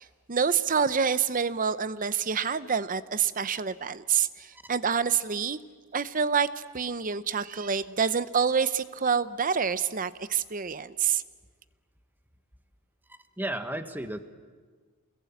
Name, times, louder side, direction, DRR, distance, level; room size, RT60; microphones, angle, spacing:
voice 1, 0.0-5.6 5.9-11.2, right 6 dB, 40° right, 14 dB, 0.8 m, -27 dB
voice 2, 13.1-14.2, right 1 dB, 10° right, 8 dB, 1.3 m, -34 dB
29.0 x 21.0 x 8.5 m, 1.5 s
head